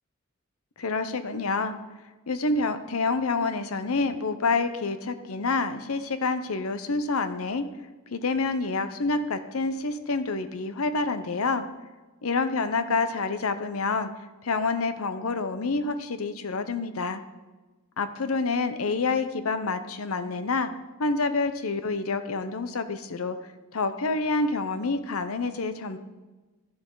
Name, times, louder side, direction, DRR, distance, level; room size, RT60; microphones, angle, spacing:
voice 1, 0.8-1.8 2.3-7.6 8.1-11.6 12.2-14.1 14.4-17.2 18.0-20.7 21.0-23.4 23.7-26.0, left 3 dB, 75° left, 11 dB, 0.8 m, -27 dB
12.0 x 11.0 x 3.9 m, 1.2 s
head